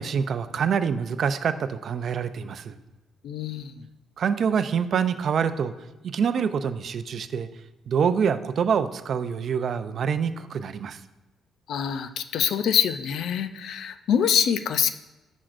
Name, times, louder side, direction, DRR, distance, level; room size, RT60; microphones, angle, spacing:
voice 1, 0.0-2.8 4.2-5.7 6.0-7.5 7.9-11.0, right 7 dB, 50° right, 11 dB, 0.4 m, -26 dB
voice 2, 3.2-3.8 11.7-14.9, left 8 dB, 70° left, 11 dB, 0.4 m, -25 dB
10.0 x 6.2 x 2.5 m, 1.0 s
cardioid pair, 115°, 0 cm